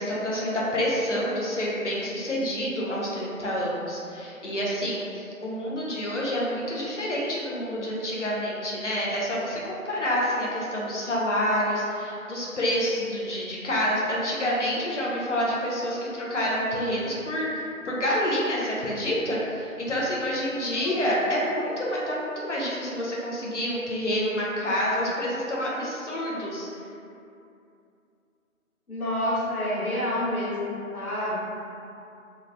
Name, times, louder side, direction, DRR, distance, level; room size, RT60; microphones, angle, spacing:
voice 1, 0.0-26.7, equal, 55° left, -5 dB, 0.6 m, -28 dB
voice 2, 20.5-21.2 28.9-31.3, left 1 dB, 85° left, -7 dB, 1.0 m, -29 dB
2.8 x 2.1 x 2.6 m, 2.6 s
figure-of-eight pair, 170°, 42 cm